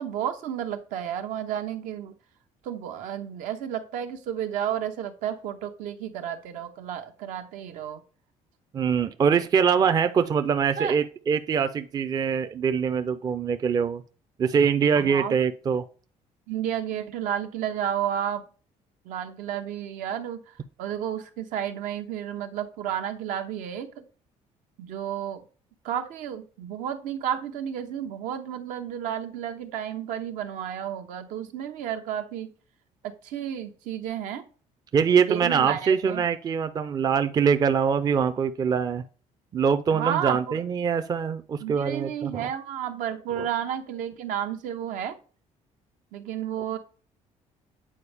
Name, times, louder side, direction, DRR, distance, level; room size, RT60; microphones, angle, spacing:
voice 1, 0.0-2.1 2.6-8.0 10.8-11.0 15.0-15.3 16.5-18.4 19.0-24.0 24.8-25.4 25.8-32.5 33.0-34.4 35.2-36.2 39.9-40.6 41.6-45.2 46.1-46.8, right 9 dB, 80° right, 7 dB, 0.9 m, -32 dB
voice 2, 8.7-14.0 14.4-15.8 34.9-39.0 39.5-42.5 43.4-43.5, right 6 dB, 30° right, 10 dB, 0.4 m, -23 dB
8.5 x 4.3 x 3.4 m, 0.40 s
cardioid pair, 145°, 13 cm